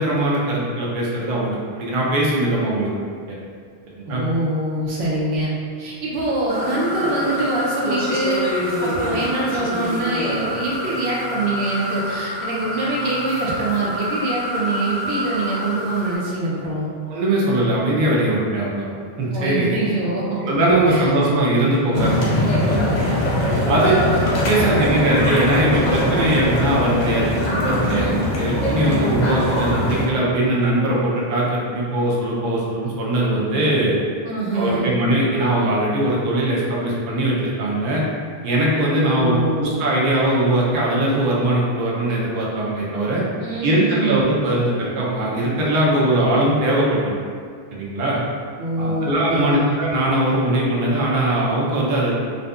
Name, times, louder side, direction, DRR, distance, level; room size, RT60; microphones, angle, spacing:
voice 1, 0.0-2.9 3.3-3.4 4.0-4.2 17.1-18.9 19.2-19.7 20.4-23.0 23.5-24.0 24.5-33.9 34.5-38.0 38.4-43.2 43.6-47.2 47.7-48.2 48.8-52.2, right 1 dB, 60° right, -5 dB, 0.7 m, -20 dB
voice 2, 4.0-5.5 5.8-8.5 8.8-16.9 19.3-20.4 20.9-21.1 24.6-24.9 27.9-28.2 34.2-34.9 38.9-39.8 43.4-44.2 48.6-49.7, right 2 dB, 90° right, -5 dB, 0.9 m, -24 dB
sound 1, 6.5-16.2, equal, 15° right, 0.3 m, -27 dB
sound 2, 21.9-30.1, left 1 dB, 55° left, 0.6 m, -21 dB
2.6 x 2.5 x 2.3 m, 2.1 s
omnidirectional pair, 1.0 m